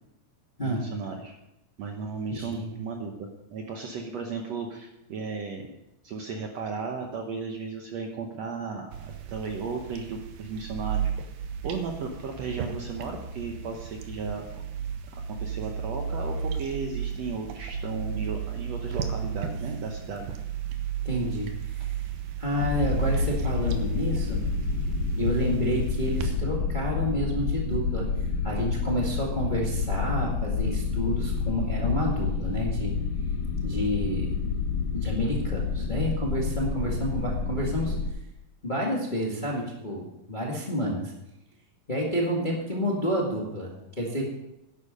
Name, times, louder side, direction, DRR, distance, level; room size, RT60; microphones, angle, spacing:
voice 1, 0.6-1.4 1.8-5.7 6.0-11.1 11.6-14.6 15.3-20.3, right 4 dB, 65° right, 2 dB, 1.8 m, -35 dB
voice 2, 2.3-2.7 21.0-22.1 22.4-24.4 25.2-28.0 28.4-32.9 33.6-34.6 34.9-37.9 38.6-41.1 41.9-44.3, equal, 20° left, -2 dB, 1.4 m, -29 dB
sound 1, 8.9-26.3, right 7 dB, 80° right, 2.8 m, -34 dB
sound 2, 22.6-38.1, left 5 dB, 70° left, 2.2 m, -29 dB
11.5 x 10.5 x 5.3 m, 0.90 s
omnidirectional pair, 4.0 m